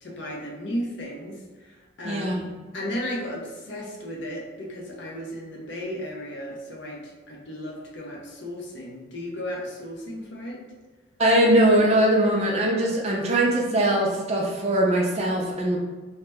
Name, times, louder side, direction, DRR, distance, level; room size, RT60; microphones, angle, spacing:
voice 1, 0.0-2.5 2.7-10.6, equal, 60° left, -2 dB, 0.6 m, -35 dB
voice 2, 2.0-2.4 11.2-15.8, right 1 dB, 30° right, -1 dB, 0.4 m, -21 dB
2.8 x 2.1 x 3.3 m, 1.3 s
head